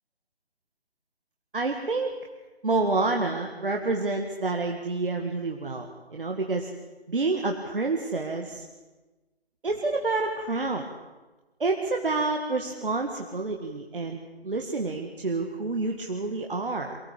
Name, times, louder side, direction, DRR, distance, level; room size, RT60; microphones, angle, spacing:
voice 1, 1.5-2.2 2.6-6.7 7.1-8.6 9.6-10.9 11.6-17.0, right 3 dB, 55° right, 2 dB, 2.0 m, -28 dB
23.5 x 17.0 x 8.3 m, 1.2 s
figure-of-eight pair, 150°, 32 cm